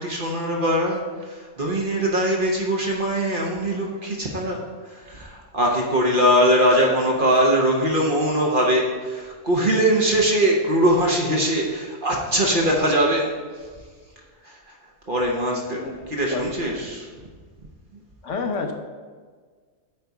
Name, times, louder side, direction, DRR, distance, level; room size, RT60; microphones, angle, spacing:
voice 1, 0.0-13.7 14.2-14.8 15.1-17.1 17.9-18.0, right 1 dB, 45° right, -1 dB, 1.0 m, -22 dB
voice 2, 15.7-16.5 18.2-18.7, left 4 dB, 65° left, 4 dB, 1.1 m, -30 dB
8.9 x 4.1 x 4.7 m, 1.5 s
omnidirectional pair, 1.4 m